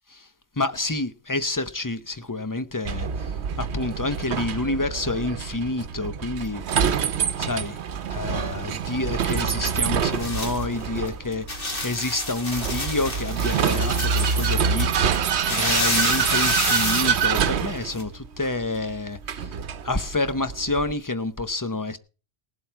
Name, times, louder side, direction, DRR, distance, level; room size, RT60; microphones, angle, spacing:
voice 1, 0.6-7.8 8.1-14.9 15.5-19.5 19.8-22.0, left 2 dB, 20° left, 0.8 m, -28 dB
Vehicle, 2.8-20.9, right 7 dB, 85° right, 1.1 m, -26 dB
sound 1, 9.3-18.0, left 2 dB, 55° left, 2.6 m, -30 dB
18.5 x 7.7 x 4.6 m
omnidirectional pair, 1.1 m